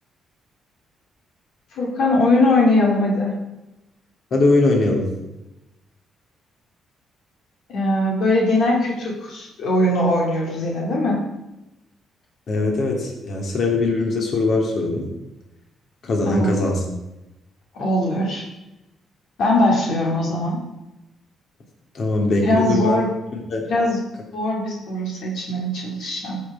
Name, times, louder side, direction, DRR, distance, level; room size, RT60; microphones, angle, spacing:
voice 1, 1.7-3.3 7.7-11.3 16.2-16.5 17.7-18.4 19.4-20.6 22.4-23.1 23.7-24.0 24.3-26.4, left 1 dB, 75° left, -2 dB, 2.5 m, -20 dB
voice 2, 4.3-5.1 12.5-15.1 16.0-16.8 21.9-23.0 23.3-23.7, left 2 dB, 55° left, 0 dB, 2.7 m, -21 dB
14.5 x 6.6 x 4.9 m, 0.97 s
cardioid pair, 90°, 0 cm